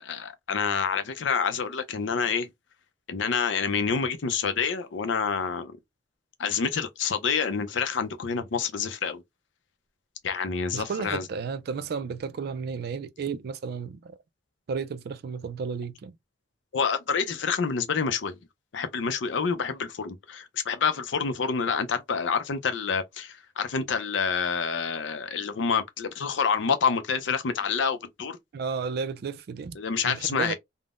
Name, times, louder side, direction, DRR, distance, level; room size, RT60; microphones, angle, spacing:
voice 1, 0.0-2.5 3.1-5.7 6.4-9.2 10.2-11.2 16.7-18.4 18.7-28.4 29.8-30.5, left 6 dB, 75° left, 0.5 m, -27 dB
voice 2, 10.7-14.2 14.7-16.1 28.5-29.8 30.0-30.5, right 5 dB, 55° right, 0.3 m, -33 dB
3.5 x 2.0 x 2.4 m
head